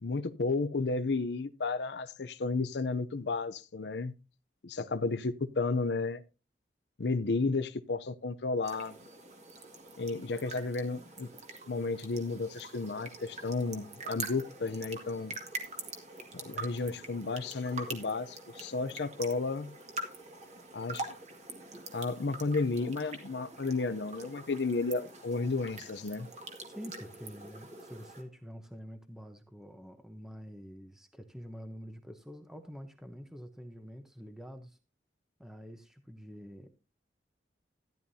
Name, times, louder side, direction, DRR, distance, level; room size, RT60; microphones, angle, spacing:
voice 1, 0.0-4.1 4.6-6.2 7.0-9.0 10.0-11.3 11.7-15.3 16.3-19.7 20.7-21.1 21.9-26.3, left 3 dB, 70° left, 0.6 m, -32 dB
sound 1, 8.6-28.2, right 3 dB, 40° right, 2.0 m, -45 dB
voice 2, 26.7-34.8 35.4-36.7, equal, 5° right, 0.9 m, -47 dB
14.0 x 10.5 x 2.7 m
head